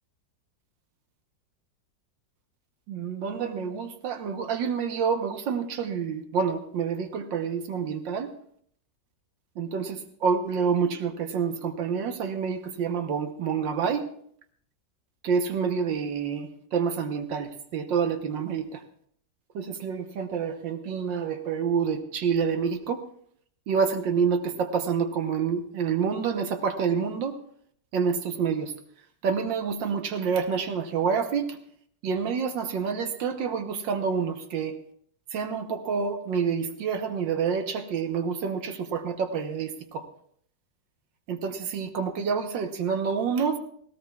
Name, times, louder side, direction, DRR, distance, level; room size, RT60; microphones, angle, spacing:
voice 1, 2.9-8.3 9.6-14.1 15.2-18.8 19.5-23.0 23.7-27.4 27.9-28.7 29.2-31.6 32.0-34.7 35.3-40.1 41.3-43.6, right 6 dB, 85° right, 6 dB, 1.8 m, -28 dB
18.0 x 17.5 x 2.4 m, 0.62 s
omnidirectional pair, 2.0 m